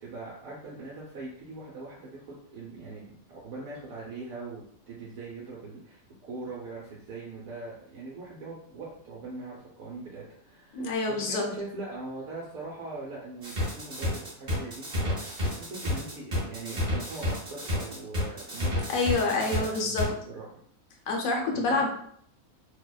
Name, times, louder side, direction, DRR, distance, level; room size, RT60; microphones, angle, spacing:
voice 1, 0.0-20.5 21.5-21.9, right 3 dB, 80° right, -5 dB, 1.1 m, -41 dB
voice 2, 10.7-11.4 18.9-20.1 21.1-21.9, left 3 dB, 75° left, 1 dB, 1.0 m, -27 dB
sound 1, 13.4-20.1, left 1 dB, 40° right, 0.8 m, -30 dB
2.7 x 2.1 x 2.2 m, 0.65 s
omnidirectional pair, 1.5 m